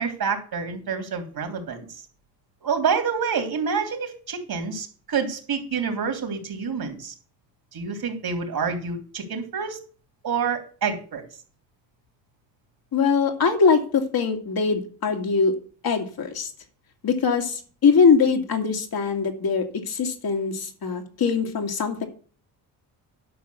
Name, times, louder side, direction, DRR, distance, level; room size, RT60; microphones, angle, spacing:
voice 1, 0.0-1.9 2.6-7.1 7.7-9.8 10.2-11.2, right 6 dB, 55° right, 5 dB, 3.4 m, -27 dB
voice 2, 12.9-15.6 15.8-16.5 17.0-22.1, left 5 dB, 50° left, 3 dB, 2.4 m, -22 dB
11.0 x 5.3 x 7.0 m, 0.41 s
supercardioid pair, 65°, 44 cm